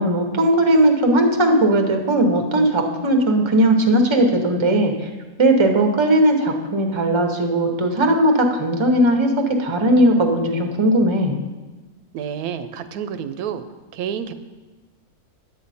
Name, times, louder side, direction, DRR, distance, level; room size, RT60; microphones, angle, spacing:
voice 1, 0.0-5.1 5.4-11.4, right 1 dB, 25° right, 4 dB, 0.8 m, -18 dB
voice 2, 12.1-13.6 13.9-14.3, right 8 dB, 90° right, 10 dB, 1.1 m, -29 dB
10.5 x 8.1 x 4.2 m, 1.2 s
omnidirectional pair, 1.5 m